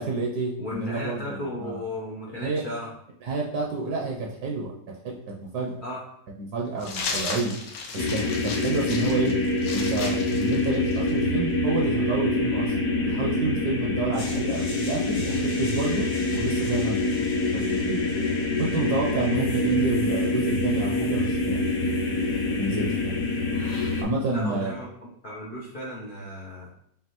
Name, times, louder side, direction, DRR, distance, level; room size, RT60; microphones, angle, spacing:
voice 1, 0.0-1.8 2.4-2.6 3.2-4.7 5.0-5.8 6.4-7.5 7.9-9.3 9.7-12.7 13.0-17.0 17.5-18.0 18.6-21.6 22.6-23.2 24.0-24.7, right 3 dB, 70° right, -2 dB, 1.1 m, -29 dB
voice 2, 0.6-2.9 5.8-6.0 19.5-20.0 24.3-24.9 25.2-26.7, left 1 dB, 70° left, -5 dB, 0.5 m, -35 dB
sound 1, 6.8-11.2, left 4 dB, 85° left, 1.3 m, -34 dB
sound 2, 8.0-24.0, left 2 dB, 50° left, 0.9 m, -26 dB
5.2 x 2.4 x 2.9 m, 0.71 s
omnidirectional pair, 1.8 m